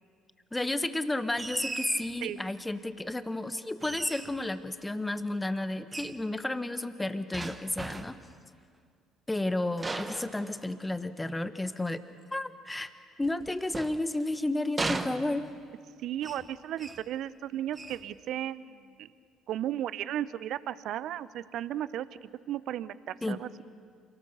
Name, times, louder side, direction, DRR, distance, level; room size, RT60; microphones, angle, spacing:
voice 1, 0.5-8.2 9.3-12.0 12.3-12.9 13.2-15.4 23.2-23.4, left 2 dB, 15° left, 11 dB, 1.3 m, -32 dB
sound 1, 1.4-2.2 3.8-4.5 5.9-6.2 7.3-8.3 9.8-11.0 13.2-14.4 14.8-15.7 16.2-16.5 16.8-17.1 17.7-18.0, right 3 dB, 25° right, 1.4 m, -37 dB
voice 2, 16.0-19.1 19.5-22.1 22.5-23.6, right 11 dB, 60° right, 18 dB, 0.7 m, -35 dB
28.0 x 18.5 x 6.8 m, 2.1 s
hypercardioid pair, 55°, 0 cm